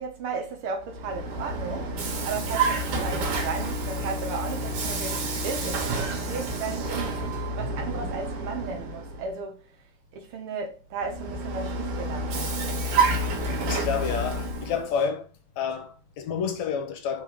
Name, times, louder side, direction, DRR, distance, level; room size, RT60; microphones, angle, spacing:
voice 1, 0.0-9.6 10.1-12.5, right 4 dB, 55° right, 1.7 m, -35 dB
Vehicle, 0.8-9.3 11.0-14.9, right 2 dB, 85° right, 3.0 m, -29 dB
voice 2, 13.4-15.3 15.6-17.2, left 6 dB, 70° left, 2.1 m, -29 dB
5.6 x 3.7 x 5.0 m
omnidirectional pair, 3.5 m